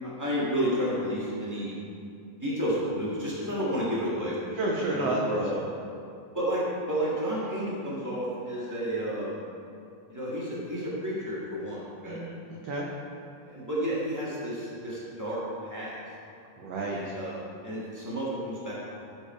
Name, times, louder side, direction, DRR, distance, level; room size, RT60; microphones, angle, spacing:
voice 1, 0.0-1.8 2.4-4.6 4.9-5.6 6.3-9.4 10.1-12.2 13.4-16.0 16.9-19.0, equal, 10° right, -8 dB, 0.9 m, -31 dB
voice 2, 4.6-5.4 12.1-12.9 16.6-17.2, right 1 dB, 85° right, -2 dB, 1.4 m, -31 dB
13.0 x 4.7 x 4.5 m, 2.5 s
omnidirectional pair, 3.9 m